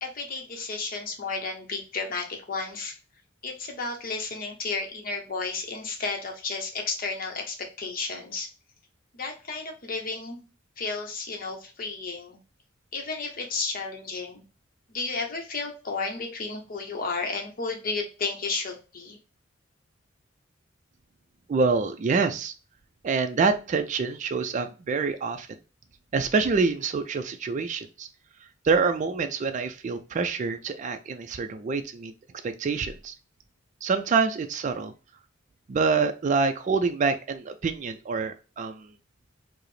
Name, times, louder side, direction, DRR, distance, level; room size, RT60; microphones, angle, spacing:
voice 1, 0.0-2.9 3.4-8.5 9.1-10.4 10.8-12.4 12.9-14.4 14.9-19.2, left 4 dB, 45° left, 3 dB, 0.8 m, -32 dB
voice 2, 21.5-22.5 23.0-25.5 26.1-28.1 28.6-32.1 32.4-33.1 33.8-34.9 35.7-38.9, right 4 dB, 40° right, 8 dB, 0.3 m, -26 dB
4.7 x 2.0 x 3.1 m, 0.33 s
head